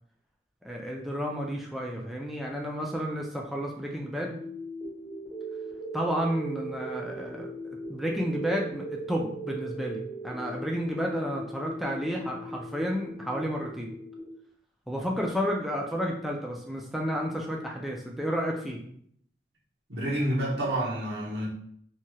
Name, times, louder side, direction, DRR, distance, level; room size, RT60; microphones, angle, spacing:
voice 1, 0.6-4.4 5.9-13.9 14.9-18.8, equal, ahead, -2 dB, 0.3 m, -31 dB
sound 1, 4.3-14.3, right 2 dB, 40° right, 1.2 m, -39 dB
voice 2, 19.9-21.5, right 1 dB, 90° right, -5 dB, 1.1 m, -29 dB
3.1 x 2.7 x 2.3 m, 0.64 s
head